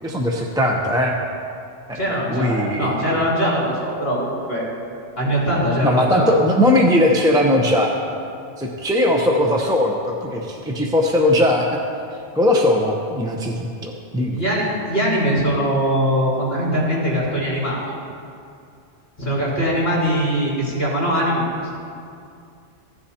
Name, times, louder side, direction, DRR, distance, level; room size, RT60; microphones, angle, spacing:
voice 1, 0.0-1.1 1.9-2.0 2.3-3.2 5.8-7.9 8.6-11.7 12.3-14.4, left 1 dB, 5° right, 0 dB, 0.5 m, -19 dB
voice 2, 1.9-4.7 5.2-6.3 14.3-17.8 19.2-21.7, equal, 50° left, -7 dB, 3.5 m, -21 dB
15.5 x 10.0 x 2.9 m, 2.4 s
omnidirectional pair, 1.3 m